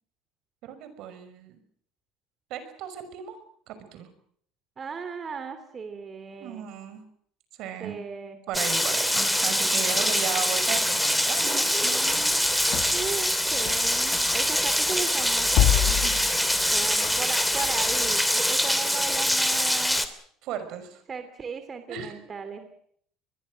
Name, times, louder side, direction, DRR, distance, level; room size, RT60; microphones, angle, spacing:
voice 1, 0.6-1.6 2.5-3.4 3.7-4.1 6.4-7.0 7.6-8.0 8.5-13.0 15.9-16.2 18.6-18.7 20.4-21.0 21.9-22.2, right 9 dB, 65° right, 10 dB, 5.8 m, -36 dB
voice 2, 4.8-6.7 7.8-8.4 9.9-10.4 12.9-20.0 21.1-22.7, right 5 dB, 30° right, 9 dB, 2.9 m, -37 dB
Rain, 8.5-20.1, equal, ahead, 2.8 m, -24 dB
sound 1, 12.1-18.2, left 14 dB, 65° left, 1.3 m, -29 dB
25.0 x 21.5 x 6.4 m, 0.64 s
supercardioid pair, 105°, 0 cm